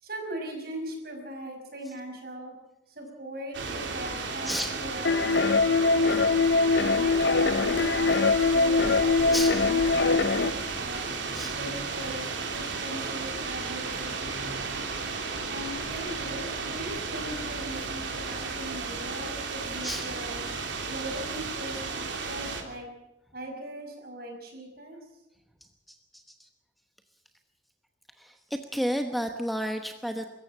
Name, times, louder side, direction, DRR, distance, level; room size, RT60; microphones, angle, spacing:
voice 1, 0.0-2.5 2.9-6.2 6.8-11.1 11.6-14.8 15.5-20.5 20.8-22.9 23.3-25.0, right 1 dB, 55° right, 3 dB, 5.4 m, -40 dB
sound 1, 3.5-22.6, right 4 dB, 80° right, 3.1 m, -34 dB
sound 2, 5.0-10.5, left 4 dB, 65° left, 0.7 m, -23 dB
voice 2, 25.9-26.5 28.2-30.3, equal, ahead, 6 dB, 1.0 m, -32 dB
24.0 x 14.5 x 7.6 m, 0.92 s
head